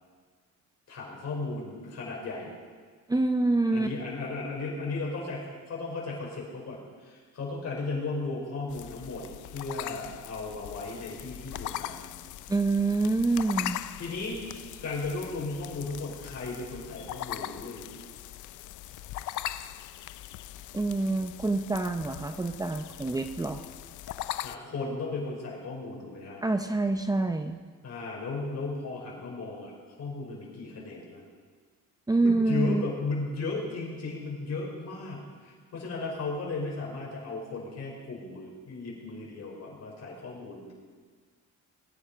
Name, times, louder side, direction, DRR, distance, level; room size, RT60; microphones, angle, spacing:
voice 1, 0.9-2.5 3.7-9.3 9.5-12.1 14.0-14.4 14.8-17.9 24.4-26.4 27.8-29.7 30.0-31.2 32.2-40.7, left 3 dB, 60° left, -2 dB, 5.4 m, -35 dB
voice 2, 3.1-3.9 12.5-13.8 20.7-23.7 26.4-27.6 32.1-32.8, right 2 dB, 10° right, 7 dB, 0.7 m, -26 dB
sound 1, 8.7-24.6, left 13 dB, 80° left, 0.6 m, -40 dB
20.5 x 9.8 x 5.1 m, 1.5 s
cardioid pair, 90°, 30 cm